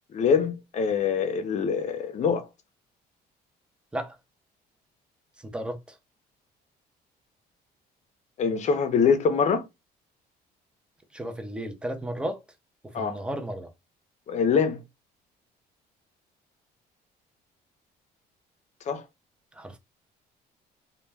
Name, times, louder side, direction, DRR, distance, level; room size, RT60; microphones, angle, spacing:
voice 1, 0.1-2.5 8.4-9.6 12.9-13.2 14.3-14.8 18.9-19.0, left 6 dB, 45° left, 0.6 m, -24 dB
voice 2, 5.4-6.0 11.1-12.4 12.8-13.7 19.5-19.8, right 1 dB, 5° right, 0.5 m, -34 dB
2.2 x 2.1 x 3.3 m
cardioid pair, 110°, 17 cm